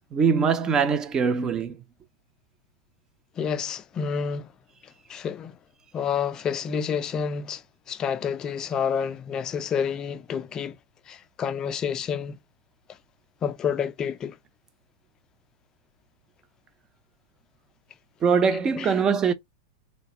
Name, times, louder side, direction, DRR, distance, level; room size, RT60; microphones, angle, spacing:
voice 1, 0.1-1.8 18.2-19.3, right 6 dB, 25° right, 0.5 m, -22 dB
voice 2, 3.4-4.5 5.1-5.6 5.9-7.6 7.9-10.8 11.1-12.4 13.4-14.4 18.8-18.9, left 7 dB, 25° left, 0.4 m, -29 dB
4.0 x 2.2 x 2.8 m
hypercardioid pair, 120°, 3 cm